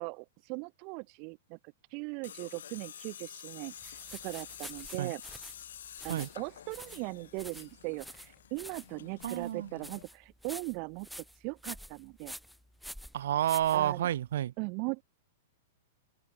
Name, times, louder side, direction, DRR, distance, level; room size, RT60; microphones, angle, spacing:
voice 1, 0.0-1.6 1.9-5.2 6.0-11.1 11.3-12.4 13.7-14.1 14.6-15.0, right 36 dB, 25° right, 1.3 m, -39 dB
Tools, 2.2-10.0, left 9 dB, 75° left, 3.1 m, -49 dB
sound 1, 3.8-14.3, equal, ahead, 1.0 m, -48 dB
voice 2, 9.2-9.7 13.1-14.5, right 11 dB, 55° right, 3.4 m, -30 dB
supercardioid pair, 180°, 0 cm